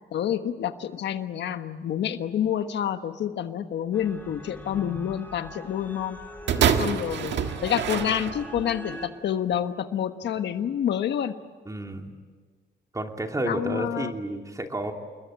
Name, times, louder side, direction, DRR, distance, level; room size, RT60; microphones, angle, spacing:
voice 1, 0.1-6.2 6.8-11.4 13.5-14.1, left 9 dB, 85° left, 9 dB, 1.4 m, -28 dB
sound 1, 3.9-9.1, equal, 10° left, 3.8 m, -41 dB
voice 2, 6.5-7.0 11.7-12.1 12.9-14.9, right 1 dB, 20° right, 3 dB, 2.9 m, -31 dB
sound 2, 6.5-8.7 9.5-9.6, right 8 dB, 85° right, 1.7 m, -26 dB
29.0 x 21.5 x 8.9 m, 1.5 s
cardioid pair, 105°, 18 cm